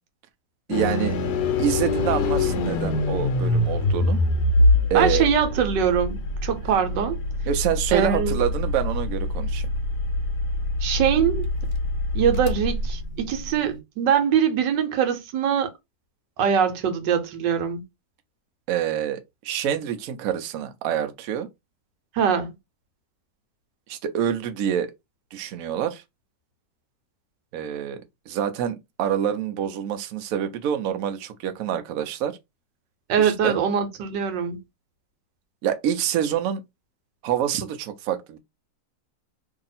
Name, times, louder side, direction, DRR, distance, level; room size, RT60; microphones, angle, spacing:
sound 1, 0.7-13.8, left 2 dB, 70° left, 1.2 m, -24 dB
voice 1, 0.7-1.2 1.6-4.2 4.9-5.3 7.5-9.7 18.7-21.5 23.9-24.9 25.3-26.0 27.5-32.4 33.2-33.6 35.6-36.6 37.2-38.4, right 10 dB, 65° right, 0.9 m, -26 dB
voice 2, 4.9-7.2 7.9-8.4 10.8-11.5 12.1-15.7 16.4-17.8 22.1-22.5 33.1-34.6, right 8 dB, 85° right, 1.4 m, -23 dB
2.8 x 2.8 x 4.0 m
omnidirectional pair, 1.9 m